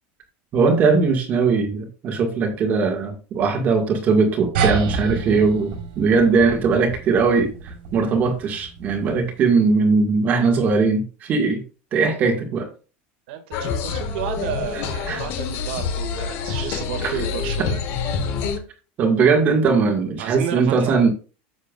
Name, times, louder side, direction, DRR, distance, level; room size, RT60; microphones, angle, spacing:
voice 1, 0.5-11.6 11.9-12.7 14.7-15.2 17.0-17.1 19.0-21.1, right 4 dB, 30° right, 4 dB, 1.9 m, -20 dB
sound 1, 4.5-9.4, right 5 dB, 90° right, 3.9 m, -29 dB
voice 2, 13.3-17.8 20.2-21.0, right 9 dB, 70° right, 6 dB, 2.1 m, -31 dB
sound 2, 13.5-18.6, left 5 dB, 40° left, 1.3 m, -27 dB
10.5 x 7.4 x 2.5 m, 0.35 s
supercardioid pair, 170°, 6 cm